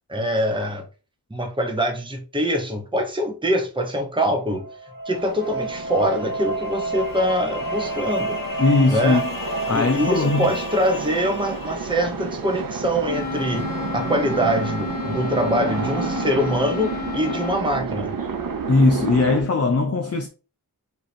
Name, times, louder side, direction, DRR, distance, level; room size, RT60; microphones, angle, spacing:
voice 1, 0.1-0.8 1.3-4.7 5.1-8.4 8.9-9.2 9.7-18.1, equal, 15° right, 1.0 m, -24 dB
sound 1, 4.5-12.3, right 1 dB, 60° left, 1.5 m, -30 dB
sound 2, 5.1-19.4, right 5 dB, 65° right, 0.8 m, -31 dB
voice 2, 8.6-9.2 9.7-10.5 18.7-20.3, left 3 dB, 40° left, 0.6 m, -19 dB
Wind instrument woodwind instrument, 13.1-17.6, left 7 dB, 25° left, 1.4 m, -32 dB
3.8 x 3.3 x 4.2 m
wide cardioid pair, 90°, 37 cm